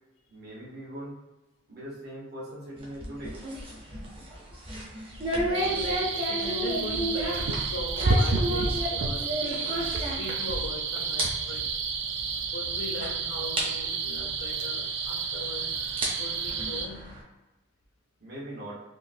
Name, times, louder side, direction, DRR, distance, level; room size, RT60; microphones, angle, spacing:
voice 1, 0.3-1.1 1.7-3.4 18.2-18.8, right 1 dB, 50° right, 1.1 m, -40 dB
sound 1, 2.8-10.7 11.0-11.3 11.6-11.7 12.4-12.5 13.0-13.1 13.6-13.7 15.0-15.1 15.8-17.2, right 1 dB, 25° right, 0.7 m, -32 dB
voice 2, 5.3-11.7 12.5-15.8 16.1-17.2, left 2 dB, 80° left, 0.6 m, -40 dB
sound 2, 5.5-16.9, right 4 dB, 65° right, 0.4 m, -30 dB
3.6 x 2.4 x 2.6 m
head